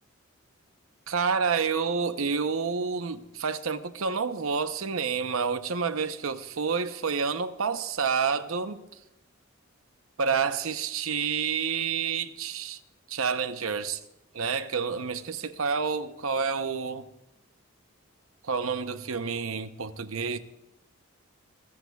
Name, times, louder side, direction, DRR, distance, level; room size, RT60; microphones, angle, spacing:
voice 1, 1.1-8.8 10.2-12.8 13.1-14.0 14.3-17.1 18.4-20.4, right 5 dB, 80° right, 0.8 m, -29 dB
27.5 x 14.5 x 2.3 m
head